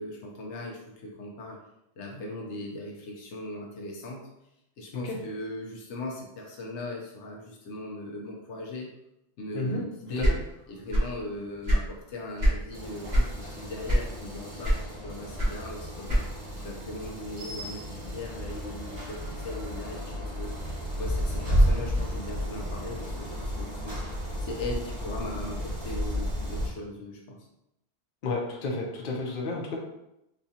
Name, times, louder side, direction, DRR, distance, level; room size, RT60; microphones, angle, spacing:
voice 1, 0.0-1.6 2.0-4.3 4.8-8.9 9.4-10.4 10.7-16.3 16.6-20.5 21.0-24.0 24.4-27.4, left 1 dB, 85° left, -1 dB, 1.0 m, -39 dB
sound 1, 10.2-11.2 11.5-12.6 13.1-13.4 13.8-14.3 14.6-16.5, equal, 40° right, 1.3 m, -24 dB
sound 2, 12.7-26.7, equal, 80° right, 1.6 m, -32 dB
voice 2, 28.2-29.8, left 3 dB, 55° left, -1 dB, 0.8 m, -31 dB
4.2 x 2.3 x 2.7 m, 0.85 s
omnidirectional pair, 1.1 m